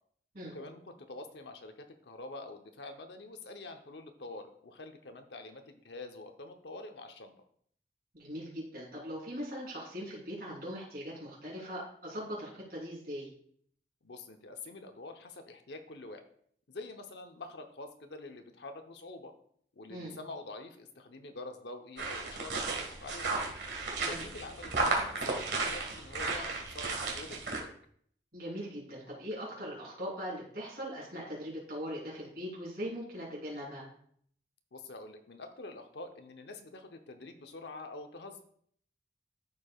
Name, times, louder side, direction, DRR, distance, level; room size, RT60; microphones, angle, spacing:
voice 1, 0.4-7.3 14.0-16.2 16.7-19.3 19.8-23.4 24.1-27.7 34.7-38.4, left 2 dB, 75° left, 6 dB, 0.8 m, -46 dB
voice 2, 8.1-13.3 19.9-20.1 24.0-24.3 28.3-33.9, equal, 55° right, -5 dB, 3.4 m, -40 dB
sound 1, 22.0-27.6, right 3 dB, 75° right, 1.5 m, -34 dB
13.5 x 4.6 x 2.3 m, 0.62 s
head